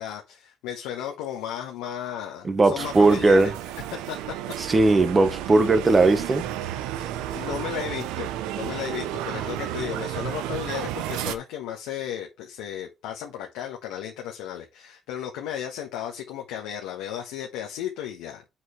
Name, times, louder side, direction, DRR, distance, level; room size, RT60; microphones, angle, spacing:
voice 1, 0.0-3.5 4.1-4.2 7.0-7.1 7.3-8.3 8.5-18.4, left 10 dB, 80° left, 1.5 m, -34 dB
voice 2, 2.4-3.5 4.6-6.4, right 3 dB, 30° right, 2.1 m, -19 dB
sound 1, 2.8-11.4, right 12 dB, 80° right, 0.7 m, -32 dB
8.1 x 7.3 x 3.3 m
hypercardioid pair, 60°, 0 cm